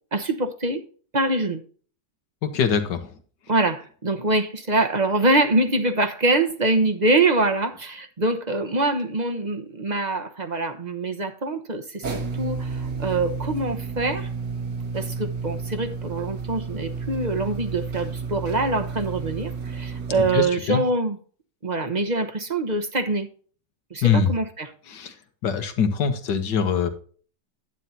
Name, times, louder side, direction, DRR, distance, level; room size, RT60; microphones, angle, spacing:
voice 1, 0.1-0.8 1.1-1.6 3.5-14.3 14.9-21.2 21.6-23.3 23.9-24.7, right 2 dB, 30° right, 6 dB, 0.8 m, -24 dB
voice 2, 2.4-3.1 20.3-20.8 24.0-24.3 24.9-25.2 25.4-26.9, left 6 dB, 80° left, 8 dB, 1.9 m, -23 dB
sound 1, 12.0-20.4, right 5 dB, 75° right, 2.4 m, -31 dB
10.5 x 9.4 x 2.8 m, 0.43 s
omnidirectional pair, 1.9 m